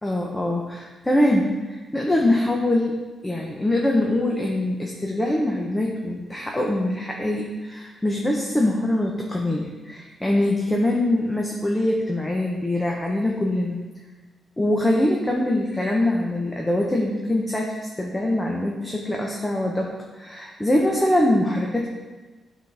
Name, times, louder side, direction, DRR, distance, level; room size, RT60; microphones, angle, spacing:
voice 1, 0.0-3.0 3.2-13.7 14.6-21.9, left 1 dB, 10° left, -1 dB, 0.7 m, -23 dB
11.5 x 4.0 x 3.3 m, 1.3 s
wide cardioid pair, 165°, 0 cm